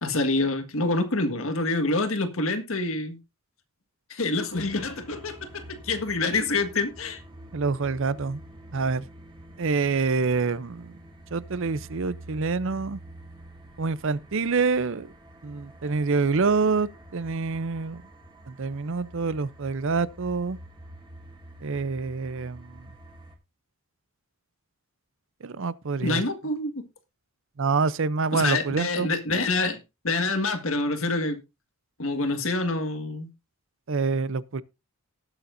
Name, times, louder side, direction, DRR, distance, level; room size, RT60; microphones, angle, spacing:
voice 1, 0.0-3.2 4.1-7.2 26.0-26.7 28.3-31.4 32.0-33.3, left 2 dB, 60° left, 1.7 m, -26 dB
sound 1, 4.5-23.4, right 1 dB, 20° right, 2.2 m, -47 dB
voice 2, 7.5-8.4 8.7-9.0 9.6-10.9 11.3-13.0 13.8-15.1 15.4-18.0 18.5-20.6 21.6-22.8 25.4-26.2 27.6-29.1 33.9-34.6, right 4 dB, 60° right, 0.6 m, -26 dB
18.5 x 7.0 x 2.6 m
head